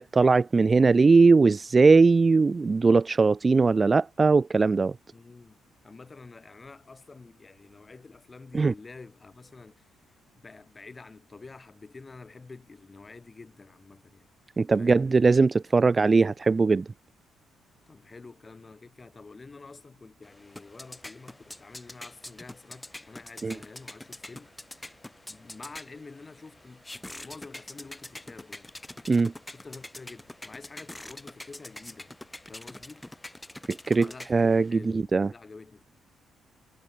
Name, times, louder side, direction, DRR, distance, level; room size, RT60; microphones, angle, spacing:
voice 1, 0.0-4.9 8.5-8.7 14.6-16.9 23.4-23.5 29.1-29.3 33.9-34.7 34.9-35.3, right 4 dB, 30° right, 0.4 m, -20 dB
voice 2, 5.1-10.0 10.4-14.3 14.8-15.3 17.9-24.5 25.3-26.8 27.2-28.7 29.5-32.1 32.5-33.1 34.0-35.8, left 3 dB, 25° left, 7.8 m, -48 dB
sound 1, 20.2-34.7, left 1 dB, 10° left, 6.9 m, -45 dB
cardioid pair, 90°, 0 cm